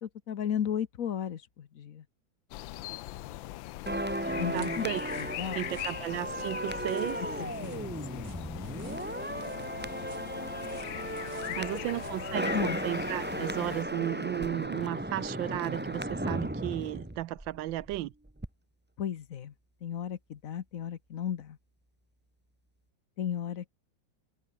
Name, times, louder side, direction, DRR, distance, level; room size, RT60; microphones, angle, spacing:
voice 1, 0.0-2.0 4.4-4.9 5.2-5.6 7.4-8.3 11.5-11.6 12.5-12.8 19.0-19.5 19.8-21.6 23.2-23.7, left 9 dB, 50° left, 1.2 m, -35 dB
sound 1, 2.5-13.8, left 16 dB, 85° left, 1.4 m, -41 dB
sound 2, 3.9-18.0 18.3-18.5, right 1 dB, 5° right, 0.9 m, -35 dB
voice 2, 4.5-5.0 5.4-7.2 11.6-12.5 12.8-18.1, right 15 dB, 75° right, 1.4 m, -34 dB
sound 3, 4.6-12.3, right 4 dB, 60° right, 4.6 m, -56 dB
omnidirectional pair, 2.1 m